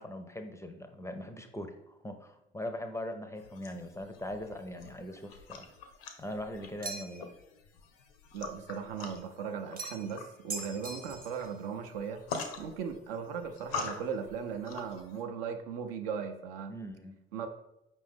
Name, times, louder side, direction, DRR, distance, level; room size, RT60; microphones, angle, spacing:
voice 1, 0.0-5.7 6.2-7.3 16.7-17.2, left 1 dB, 10° left, 7 dB, 0.4 m, -41 dB
sound 1, 3.4-15.2, left 5 dB, 80° left, 0.6 m, -45 dB
sound 2, 6.8-7.3 9.8-10.1 10.5-11.5, right 3 dB, 30° right, 0.7 m, -41 dB
voice 2, 8.3-12.2 12.6-16.7 17.3-17.5, right 6 dB, 75° right, 6 dB, 0.5 m, -37 dB
5.0 x 2.5 x 3.5 m, 0.88 s
figure-of-eight pair, 50°, 29 cm